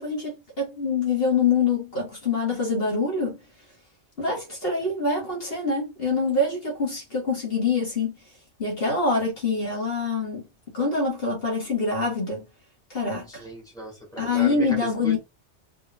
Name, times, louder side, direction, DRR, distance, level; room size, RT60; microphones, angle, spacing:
voice 1, 0.0-3.4 4.2-8.2 8.6-10.4 10.7-12.4 12.9-13.5 14.2-15.2, left 4 dB, 55° left, 1.7 m, -25 dB
voice 2, 13.3-15.2, equal, 5° left, 1.9 m, -37 dB
4.0 x 3.4 x 2.5 m
omnidirectional pair, 1.2 m